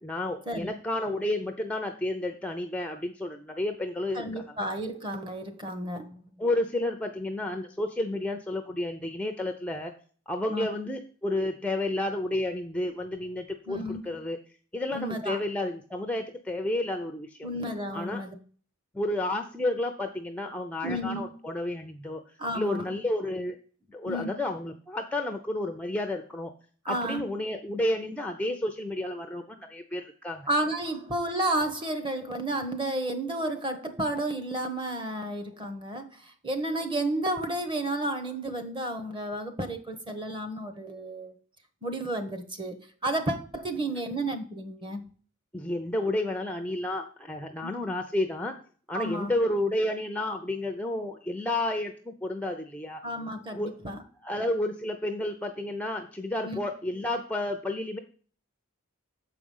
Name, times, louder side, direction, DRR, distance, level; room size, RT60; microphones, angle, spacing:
voice 1, 0.0-4.6 6.4-9.9 10.3-14.4 14.7-17.5 17.9-18.2 18.9-22.2 22.5-23.6 23.9-26.5 26.9-30.5 45.5-48.5 48.9-53.0 53.5-53.8 54.2-58.0, left 1 dB, 5° left, 5 dB, 0.5 m, -31 dB
voice 2, 4.1-6.2 10.5-10.7 13.7-14.0 14.9-15.4 17.4-18.4 20.8-21.3 22.4-22.8 24.1-24.3 26.8-27.2 30.5-41.3 41.8-42.8 43.0-45.0 47.6-47.7 48.9-49.3 53.0-54.0 56.4-56.6, right 1 dB, 20° right, 8 dB, 1.0 m, -32 dB
7.2 x 4.9 x 5.4 m, 0.42 s
head